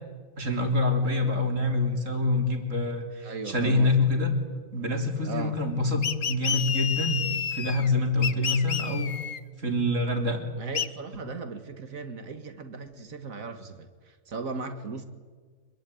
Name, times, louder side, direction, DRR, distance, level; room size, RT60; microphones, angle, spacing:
voice 1, 0.4-4.3 4.7-9.1 9.6-10.4, left 2 dB, 70° right, 4 dB, 4.0 m, -26 dB
voice 2, 3.2-3.9 5.2-5.6 10.6-15.0, right 4 dB, 85° right, 8 dB, 2.2 m, -37 dB
sound 1, 6.0-7.9 8.2-9.4 10.7-10.9, left 7 dB, 50° left, 1.1 m, -30 dB
26.0 x 23.0 x 9.3 m, 1.5 s
omnidirectional pair, 1.4 m